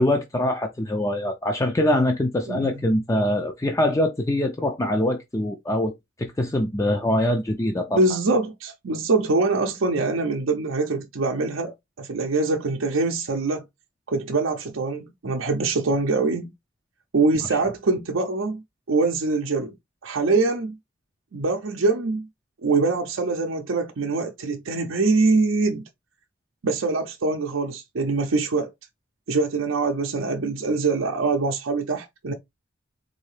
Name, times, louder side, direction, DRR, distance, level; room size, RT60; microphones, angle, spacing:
voice 1, 0.0-5.9 6.2-8.0, left 1 dB, 15° left, 0.4 m, -23 dB
voice 2, 8.0-13.6 14.1-16.5 17.1-18.6 18.9-19.7 20.0-20.8 21.3-22.3 22.6-25.8 26.6-28.7 29.3-32.3, right 3 dB, 70° right, 0.6 m, -24 dB
3.9 x 2.7 x 3.2 m
head